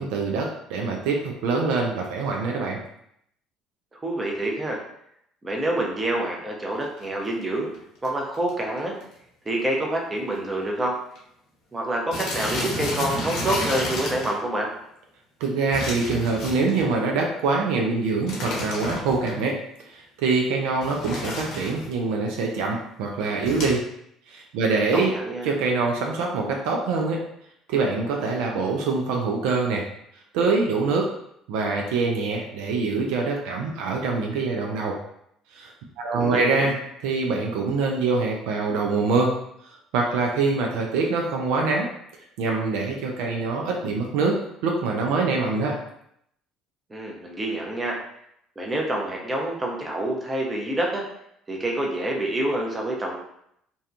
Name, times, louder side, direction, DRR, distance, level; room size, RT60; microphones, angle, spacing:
voice 1, 0.0-2.8 15.4-19.6 19.9-23.8 24.3-25.1 25.5-27.2 27.7-29.8 30.3-31.1 31.5-34.9 35.6-35.7 36.0-36.8 37.0-39.3 39.9-41.9 42.4-44.4 44.6-45.8, right 4 dB, 80° right, 0 dB, 0.4 m, -24 dB
voice 2, 3.9-4.8 5.4-7.7 8.0-9.0 9.4-11.0 11.7-14.7 24.9-25.5 36.1-36.7 46.9-48.0 48.6-51.1 51.5-53.2, right 1 dB, 25° right, -1 dB, 0.7 m, -27 dB
sound 1, 6.8-7.1 7.7-7.8 8.0-8.1 8.3-8.6 9.0-9.1 9.5-9.6 10.3-10.4 10.6-10.8 11.2-11.3 12.1-14.4 15.7-16.9 18.3-19.3 20.8-21.9 23.4-23.7, left 1 dB, 70° left, 0.8 m, -31 dB
2.6 x 2.2 x 2.4 m, 0.73 s
supercardioid pair, 80°, 0 cm